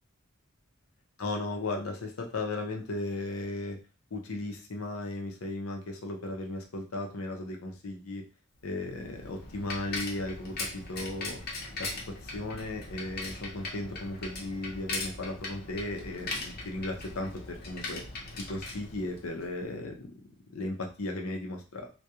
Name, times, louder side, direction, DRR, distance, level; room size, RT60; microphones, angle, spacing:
voice 1, 1.2-3.8 4.1-8.2 8.6-11.4 11.8-18.0 18.4-20.1 20.5-21.9, left 2 dB, 85° left, 2 dB, 0.6 m, -36 dB
Bicycle, 8.7-19.6, left 2 dB, 50° left, 0.7 m, -40 dB
2.3 x 2.2 x 2.8 m, 0.35 s
head